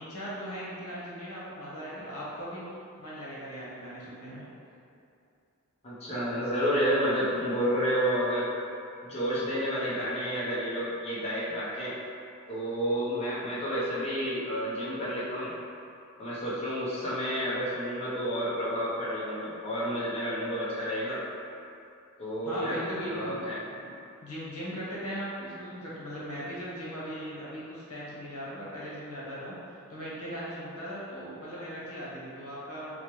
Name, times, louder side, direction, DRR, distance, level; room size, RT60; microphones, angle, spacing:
voice 1, 0.0-2.6 3.0-4.5 22.4-23.4 23.8-23.9 24.2-29.5 29.9-33.0, equal, 80° left, -7 dB, 1.0 m, -38 dB
voice 2, 5.8-8.5 9.0-11.9 12.5-15.5 16.2-21.2 22.2-22.8 23.0-23.6, equal, 30° left, -8 dB, 0.6 m, -30 dB
4.4 x 2.1 x 3.0 m, 2.6 s
head